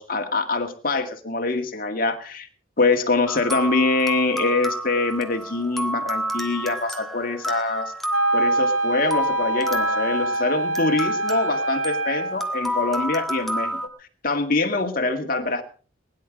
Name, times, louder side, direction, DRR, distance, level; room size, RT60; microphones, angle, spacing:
voice 1, 0.0-2.5 2.8-7.9 8.3-15.6, left 3 dB, 45° left, 5 dB, 2.0 m, -24 dB
sound 1, 3.3-13.9, equal, ahead, 1.4 m, -30 dB
Wind instrument woodwind instrument, 8.1-12.5, right 2 dB, 70° right, 1.8 m, -24 dB
21.0 x 10.5 x 4.7 m, 0.38 s
head